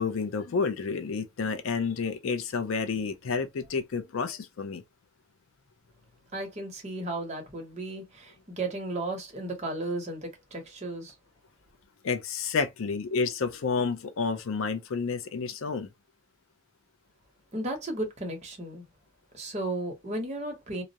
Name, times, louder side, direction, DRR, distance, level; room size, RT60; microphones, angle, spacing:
voice 1, 0.0-4.8 12.0-15.9, left 5 dB, 70° left, 0.4 m, -30 dB
voice 2, 6.3-11.1 17.5-18.8 19.3-20.8, right 2 dB, 30° right, 0.8 m, -34 dB
2.3 x 2.0 x 2.7 m
head